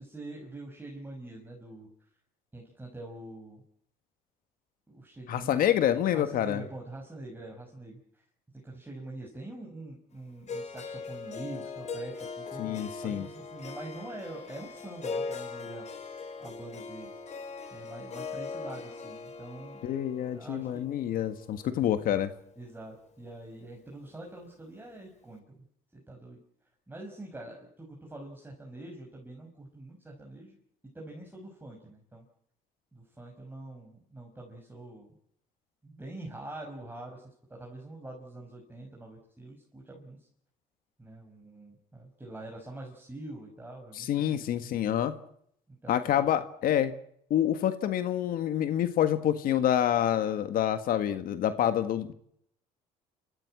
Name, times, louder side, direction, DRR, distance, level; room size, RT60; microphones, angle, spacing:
voice 1, 0.0-1.9 2.5-3.6 4.9-5.6 6.1-8.0 8.5-15.9 16.4-17.2 17.7-19.8 20.3-20.8 21.8-21.9 22.6-25.6 25.9-26.4 26.9-30.6 30.9-32.2 32.9-35.1 35.8-40.2 41.0-44.7 45.7-46.3, right 2 dB, 10° right, -1 dB, 5.8 m, -45 dB
voice 2, 5.3-6.6 12.6-13.3 19.8-22.3 44.0-45.1 45.9-46.9 47.3-52.1, left 10 dB, 65° left, 10 dB, 1.7 m, -27 dB
Harp, 10.5-22.6, left 4 dB, 45° left, 3.7 m, -40 dB
29.0 x 15.0 x 7.6 m, 0.70 s
supercardioid pair, 90°, 16 cm